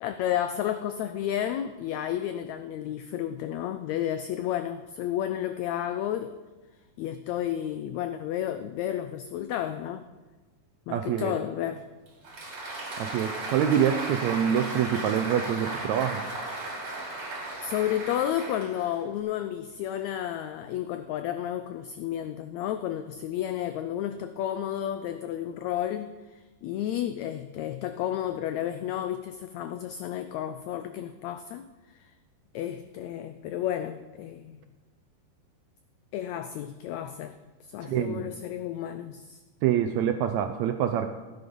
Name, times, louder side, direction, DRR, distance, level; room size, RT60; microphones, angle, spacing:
voice 1, 0.0-6.4 7.0-10.0 10.9-11.8 17.6-31.7 31.9-32.1 32.5-34.7 36.1-37.4 37.6-39.4, left 11 dB, 90° left, 10 dB, 1.6 m, -32 dB
voice 2, 10.9-11.4 13.0-16.2 37.8-38.3 39.6-41.1, right 9 dB, 80° right, 6 dB, 1.6 m, -26 dB
Applause, 12.1-19.2, right 2 dB, 40° right, 4.1 m, -35 dB
16.0 x 9.5 x 5.3 m, 1.3 s
omnidirectional pair, 3.8 m